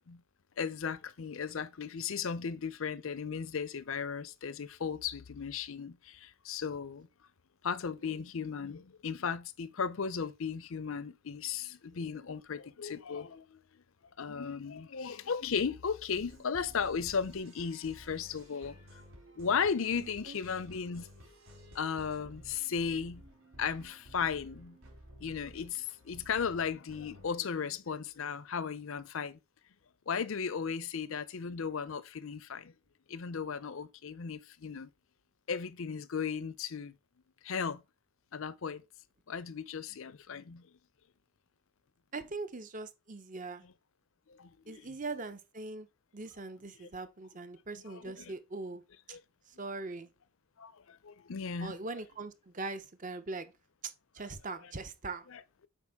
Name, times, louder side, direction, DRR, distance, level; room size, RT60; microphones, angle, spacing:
voice 1, 0.6-7.1 7.6-13.6 14.2-18.8 19.4-21.1 21.7-23.2 23.6-24.8 25.2-29.4 30.1-32.7 33.1-34.9 35.5-36.9 37.4-37.8 38.3-38.8 39.3-40.6 44.3-44.9 46.8-46.9 47.9-48.3 49.1-49.2 50.6-51.8 55.3-55.7, left 6 dB, 65° left, 0.5 m, -36 dB
sound 1, 16.1-27.3, equal, 75° right, 4.3 m, -54 dB
voice 2, 20.0-20.4 42.1-43.6 44.7-45.9 46.1-48.8 49.1-49.2 49.5-50.1 51.6-53.5 53.8-55.2, right 3 dB, 35° right, 0.8 m, -41 dB
8.3 x 5.2 x 3.6 m
head